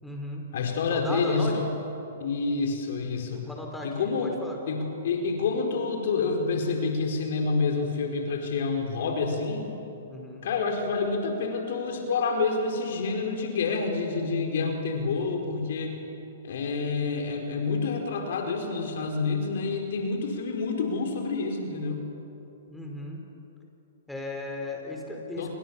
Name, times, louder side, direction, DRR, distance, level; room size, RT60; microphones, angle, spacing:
voice 1, 0.0-0.4 0.9-1.7 3.3-4.6 10.1-10.5 22.7-23.2 24.1-25.5, left 2 dB, 5° left, 0 dB, 4.9 m, -36 dB
voice 2, 0.5-1.7 2.2-3.5 3.8-4.3 4.6-9.7 10.4-16.0 16.4-22.0 25.4-25.5, left 4 dB, 65° left, 3 dB, 4.7 m, -28 dB
28.5 x 24.0 x 7.3 m, 3.0 s
hypercardioid pair, 125°, 0 cm